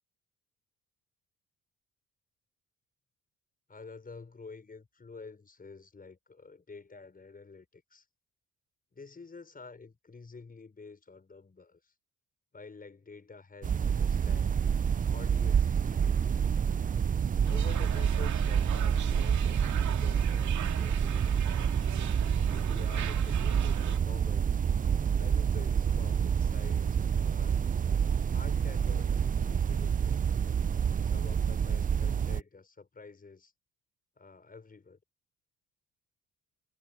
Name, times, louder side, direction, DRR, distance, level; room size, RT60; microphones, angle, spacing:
voice 1, 3.7-8.0 8.9-11.9 12.5-14.6 15.1-16.4 17.5-19.6 19.9-21.5 22.5-24.6 25.1-27.7 28.3-30.2 31.0-33.5 34.2-35.0, left 4 dB, 30° left, 5.9 m, -49 dB
sound 1, 13.6-32.4, right 7 dB, 30° right, 0.5 m, -28 dB
sound 2, 17.4-24.0, right 11 dB, 70° right, 2.4 m, -42 dB
cardioid pair, 90°, 30 cm